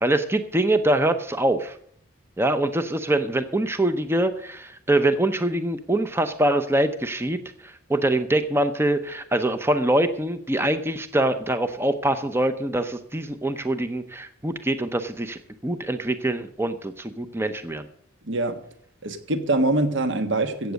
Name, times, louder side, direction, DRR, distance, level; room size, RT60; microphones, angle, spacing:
voice 1, 0.0-1.8 2.4-17.9, right 1 dB, 10° right, 10 dB, 0.7 m, -24 dB
voice 2, 18.2-18.6 19.0-20.7, right 2 dB, 60° right, 8 dB, 1.4 m, -24 dB
15.0 x 8.1 x 6.4 m, 0.63 s
head